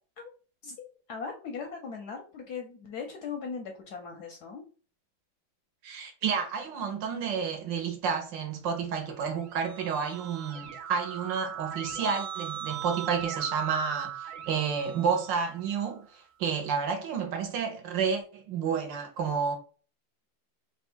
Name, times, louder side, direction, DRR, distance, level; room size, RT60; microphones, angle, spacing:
voice 1, 0.6-4.6, left 5 dB, 70° left, 0.9 m, -39 dB
voice 2, 5.8-19.6, right 6 dB, 70° right, 1.4 m, -30 dB
Keyboard (musical), 9.2-15.8, right 9 dB, 85° right, 1.5 m, -39 dB
3.4 x 2.3 x 4.3 m
omnidirectional pair, 2.2 m